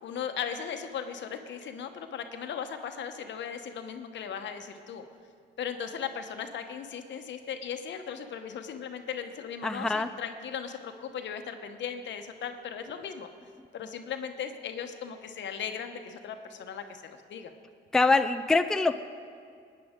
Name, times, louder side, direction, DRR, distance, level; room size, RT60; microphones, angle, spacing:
voice 1, 0.0-5.0 5.6-13.3 13.7-17.5, left 7 dB, 65° left, 7 dB, 1.0 m, -37 dB
voice 2, 9.6-10.1 17.9-19.0, left 3 dB, 5° left, 9 dB, 0.4 m, -24 dB
20.5 x 9.5 x 3.7 m, 2.2 s
cardioid pair, 90°, 20 cm